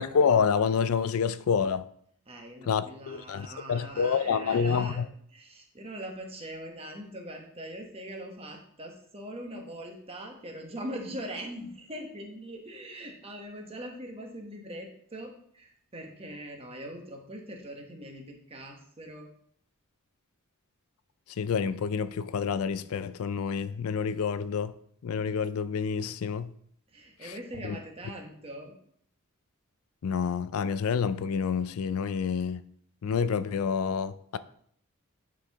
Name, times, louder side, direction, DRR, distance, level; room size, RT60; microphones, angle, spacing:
voice 1, 0.0-1.8 2.7-5.1 21.4-24.7 25.0-26.5 27.6-27.8 30.0-32.6 33.0-34.4, left 6 dB, 70° left, 0.4 m, -28 dB
voice 2, 2.3-19.3 26.9-28.7, right 1 dB, 25° right, 1.2 m, -42 dB
9.8 x 4.6 x 3.6 m
head